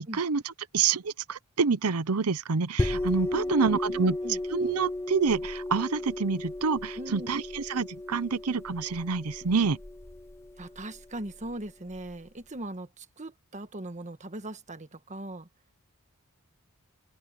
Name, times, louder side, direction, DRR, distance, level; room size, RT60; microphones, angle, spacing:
voice 1, 0.0-4.2 4.5-9.8, right 5 dB, 85° right, 0.8 m, -27 dB
sound 1, 2.8-12.1, left 1 dB, 10° left, 0.4 m, -35 dB
voice 2, 3.3-4.4 7.0-7.3 10.6-15.5, right 1 dB, 35° right, 1.4 m, -40 dB
open air
head